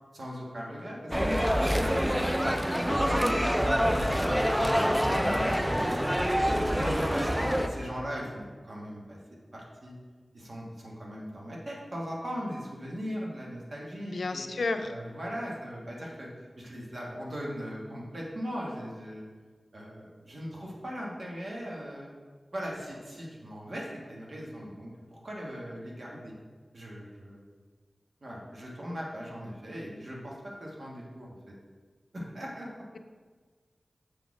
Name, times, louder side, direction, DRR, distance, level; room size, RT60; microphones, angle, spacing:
voice 1, 0.1-2.6 3.0-3.7 4.2-4.8 5.2-6.0 6.7-9.2 9.5-9.9 10.3-14.4 14.8-16.3 16.6-19.3 19.7-22.1 22.5-26.3 26.7-27.4 28.2-31.5 32.1-32.8, equal, 55° right, -3 dB, 1.4 m, -39 dB
sound 1, 1.1-7.7, equal, 5° right, 0.5 m, -26 dB
voice 2, 5.2-5.5 14.0-14.9, left 3 dB, 80° left, 7 dB, 0.5 m, -32 dB
6.9 x 4.2 x 4.7 m, 1.5 s
wide cardioid pair, 85°, 0 cm